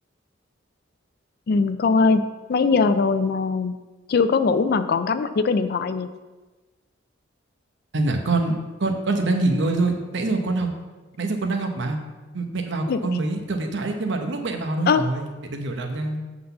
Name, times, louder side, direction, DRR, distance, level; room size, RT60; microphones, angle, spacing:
voice 1, 1.5-2.2 2.5-3.8 4.1-6.1 12.9-13.0 14.9-15.0, left 4 dB, 50° left, 11 dB, 0.4 m, -20 dB
voice 2, 7.9-10.7 11.2-12.0 12.3-16.2, right 2 dB, 65° right, 4 dB, 0.9 m, -25 dB
7.8 x 4.0 x 6.8 m, 1.2 s
head